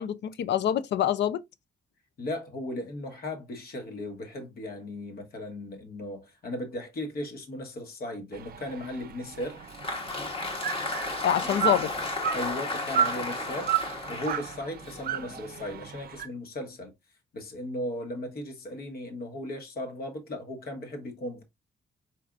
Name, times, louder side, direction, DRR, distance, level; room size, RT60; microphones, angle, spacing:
voice 1, 0.0-1.4 11.2-11.9, left 10 dB, 75° left, 0.5 m, -26 dB
voice 2, 2.2-9.6 12.3-13.7 14.1-16.9 17.3-21.4, left 1 dB, 55° left, 1.3 m, -36 dB
sound 1, 8.3-16.3, right 10 dB, 55° right, 0.5 m, -33 dB
Applause, 9.4-15.7, left 2 dB, 30° left, 1.1 m, -34 dB
4.8 x 4.5 x 2.4 m
wide cardioid pair, 145°, 18 cm